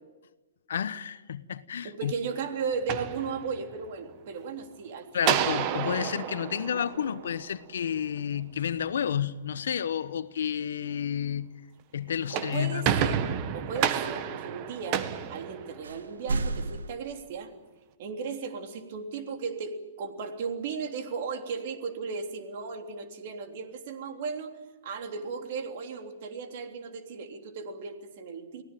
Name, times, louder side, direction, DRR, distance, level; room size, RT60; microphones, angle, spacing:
voice 1, 0.7-2.1 5.1-11.5 11.9-12.9, left 8 dB, 75° left, 1.1 m, -31 dB
voice 2, 1.8-5.5 12.3-13.3 13.5-17.5 18.0-24.5 24.8-28.6, right 5 dB, 50° right, 3.4 m, -36 dB
sound 1, 2.7-3.9 5.2-7.7 12.1-16.2, right 9 dB, 35° right, 1.6 m, -30 dB
sound 2, 6.9-7.7 8.5-9.4 12.9-13.0 15.1-15.2 15.8-16.9, right 3 dB, 90° right, 1.9 m, -35 dB
24.5 x 17.0 x 9.2 m
hypercardioid pair, 140°, 0 cm